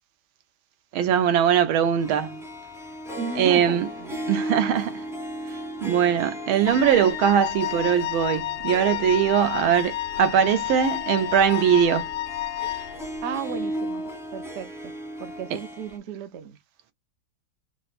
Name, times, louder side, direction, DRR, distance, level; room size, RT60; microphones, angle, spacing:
voice 1, 0.9-2.4 3.4-3.9 4.3-5.0 5.8-12.1, right 8 dB, 90° right, 1.6 m, -21 dB
Harp, 2.0-16.0, equal, 5° right, 0.6 m, -36 dB
voice 2, 3.1-4.3 13.2-14.9 15.2-16.6, right 7 dB, 60° right, 0.7 m, -35 dB
Wind instrument woodwind instrument, 6.7-13.0, left 14 dB, 80° left, 1.3 m, -31 dB
4.6 x 2.1 x 2.4 m
omnidirectional pair, 2.2 m